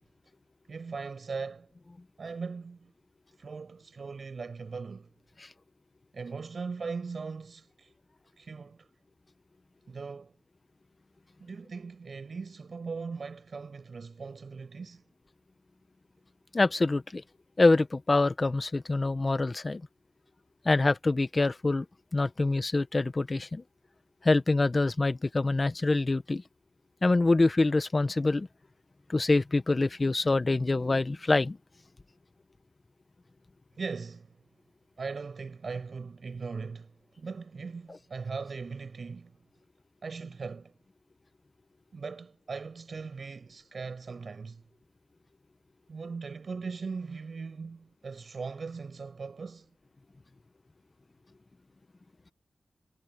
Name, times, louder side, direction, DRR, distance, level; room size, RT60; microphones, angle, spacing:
voice 1, 0.7-1.7 2.2-2.9 3.4-5.1 6.1-7.9 8.4-8.9 9.9-10.3 11.4-15.0 33.7-34.3 35.0-36.9 37.2-39.4 40.0-40.7 41.9-44.6 45.9-49.7, right 4 dB, 60° right, 7.5 m, -39 dB
voice 2, 16.5-17.2 17.6-19.8 20.6-21.8 22.1-23.6 24.2-26.4 27.0-28.5 29.1-31.6, left 2 dB, 35° left, 1.2 m, -25 dB
wide cardioid pair, 75°, 0 cm